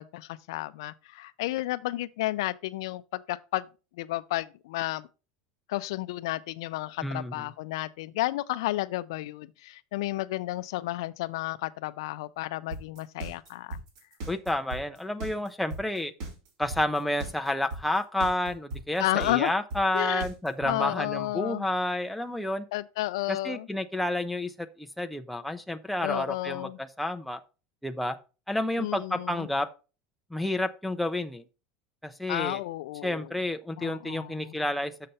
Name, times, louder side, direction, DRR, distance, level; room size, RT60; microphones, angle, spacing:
voice 1, 0.0-3.7 4.0-5.1 5.7-13.8 19.0-19.5 19.9-20.3 20.6-21.7 22.7-23.7 26.0-26.8 28.8-29.5 32.3-33.3 33.8-34.5, left 17 dB, 85° left, 0.5 m, -32 dB
voice 2, 7.0-7.4 14.3-16.1 16.6-22.6 23.3-27.4 27.8-28.2 28.5-29.7 30.3-31.4 32.0-32.6 33.0-34.9, left 1 dB, ahead, 0.5 m, -30 dB
sound 1, 12.7-20.7, right 2 dB, 65° right, 3.3 m, -37 dB
6.7 x 6.6 x 4.1 m
supercardioid pair, 160°, 3 cm